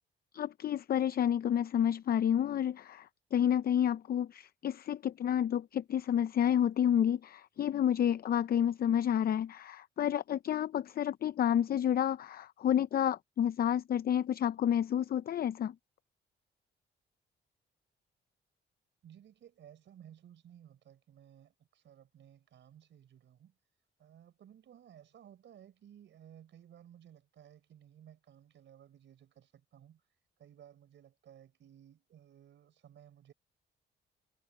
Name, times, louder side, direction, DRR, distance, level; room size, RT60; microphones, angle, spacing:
voice 1, 0.3-15.7, left 9 dB, 50° left, 0.5 m, -30 dB
voice 2, 19.0-23.6 24.0-30.0 30.4-33.3, right 10 dB, 70° right, 5.0 m, -57 dB
cardioid pair, 90°, 20 cm